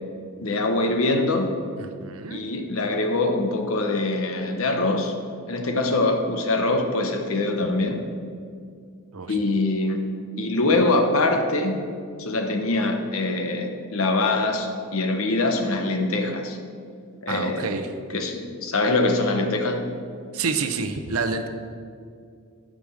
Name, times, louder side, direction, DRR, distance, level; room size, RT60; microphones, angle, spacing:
voice 1, 0.4-1.5 2.3-5.1 5.5-8.0 9.3-10.1 10.4-11.8 12.2-16.6 17.2-17.8 18.1-19.8, left 2 dB, 65° left, 4 dB, 1.0 m, -23 dB
voice 2, 1.8-2.4 9.1-9.4 17.3-17.9 20.3-21.5, right 4 dB, 70° right, 8 dB, 0.7 m, -28 dB
10.5 x 5.1 x 6.5 m, 2.3 s
head